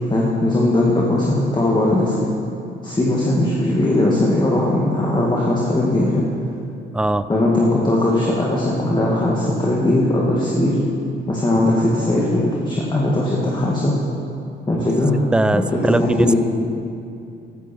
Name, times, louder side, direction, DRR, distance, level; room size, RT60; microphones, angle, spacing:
voice 1, 0.1-2.3 2.8-6.2 7.3-10.8 11.3-13.9 14.7-15.2 15.5-16.4, left 1 dB, 20° left, -4 dB, 2.3 m, -19 dB
voice 2, 6.9-7.3 15.3-16.3, right 1 dB, 5° right, 13 dB, 0.4 m, -19 dB
15.0 x 13.0 x 4.6 m, 2.6 s
cardioid pair, 90°, 20 cm